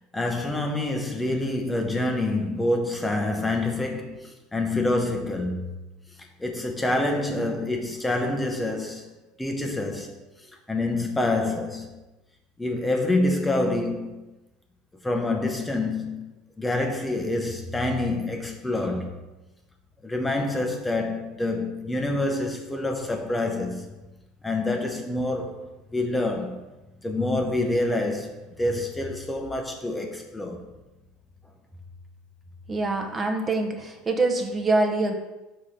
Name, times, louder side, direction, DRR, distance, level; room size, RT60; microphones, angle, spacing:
voice 1, 0.0-5.8 6.4-9.1 9.4-10.1 10.4-11.9 12.6-14.2 15.0-19.1 20.0-23.9 24.4-26.6 27.0-30.6, left 2 dB, 10° left, 0.7 m, -27 dB
voice 2, 32.7-35.1, right 2 dB, 25° right, 0.9 m, -24 dB
4.9 x 3.7 x 5.6 m
supercardioid pair, 115°, 0 cm